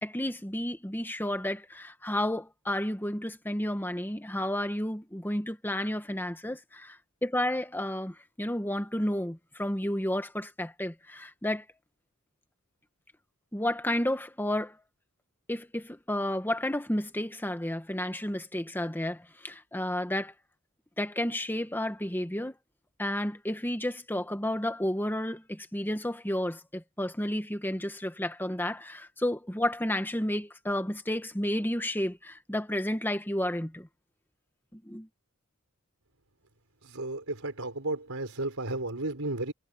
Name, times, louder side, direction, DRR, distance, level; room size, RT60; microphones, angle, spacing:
voice 1, 0.0-11.6 13.5-14.8 15.5-20.3 21.0-22.5 23.0-33.9 34.7-35.1, left 1 dB, 10° left, 1.7 m, -31 dB
voice 2, 36.9-39.5, right 2 dB, 75° right, 4.8 m, -33 dB
head